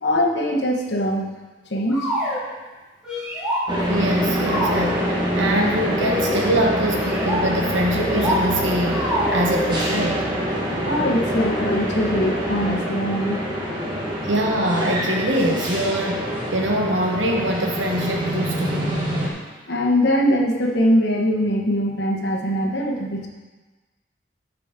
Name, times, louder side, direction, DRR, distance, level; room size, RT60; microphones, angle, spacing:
voice 1, 0.0-1.3 1.7-2.1 10.8-13.4 19.7-23.3, equal, 65° left, 0 dB, 1.2 m, -22 dB
sound 1, 1.9-2.4 3.0-3.6 4.4-5.0 6.0-6.4 6.9-7.4 7.9-8.4 8.9-9.7, equal, 5° right, 2.0 m, -26 dB
sound 2, 3.7-19.3, equal, 25° right, 1.3 m, -25 dB
voice 2, 3.9-10.2 14.2-16.2 16.5-18.9, right 1 dB, 85° right, 1 dB, 1.3 m, -23 dB
12.0 x 5.1 x 3.7 m, 1.3 s
head